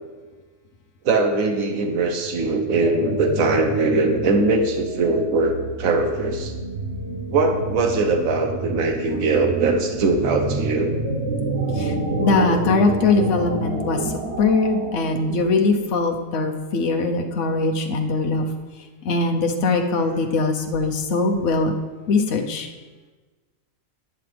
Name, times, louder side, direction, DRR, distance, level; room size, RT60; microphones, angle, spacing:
voice 1, 1.0-6.5 7.3-10.9, right 3 dB, 85° right, 5 dB, 1.4 m, -21 dB
sound 1, 1.9-16.0, right 2 dB, 55° right, 1.4 m, -29 dB
voice 2, 12.2-14.0 14.4-18.5 19.0-21.7 22.1-22.7, left 3 dB, 65° left, 3 dB, 1.2 m, -21 dB
11.0 x 9.6 x 3.4 m, 1.3 s
omnidirectional pair, 1.4 m